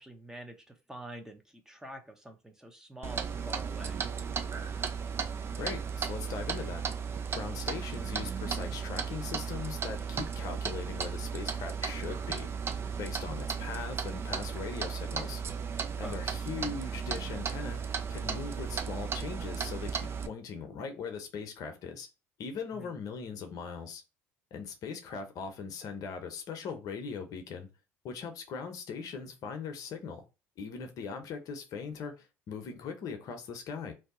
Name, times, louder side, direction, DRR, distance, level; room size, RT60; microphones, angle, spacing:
voice 1, 0.0-4.0 13.3-13.4 16.0-16.2 22.8-22.9, right 1 dB, 5° right, 0.8 m, -46 dB
Clock, 3.0-20.3, right 6 dB, 35° right, 0.5 m, -35 dB
voice 2, 5.6-6.8 7.3-15.4 16.0-22.1 22.4-24.0 24.5-27.7 28.0-30.2 30.6-33.9, left 5 dB, 55° left, 0.8 m, -40 dB
2.7 x 2.2 x 3.7 m
hypercardioid pair, 65°, 7 cm